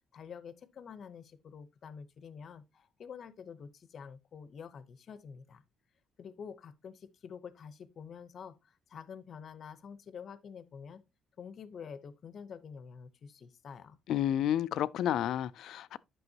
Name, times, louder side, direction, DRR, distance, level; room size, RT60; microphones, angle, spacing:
voice 1, 0.1-5.6 6.2-11.0 11.4-14.0, left 6 dB, 40° left, 0.8 m, -48 dB
voice 2, 14.1-16.0, left 11 dB, 65° left, 0.4 m, -30 dB
11.0 x 6.1 x 2.8 m
cardioid pair, 170°, 0 cm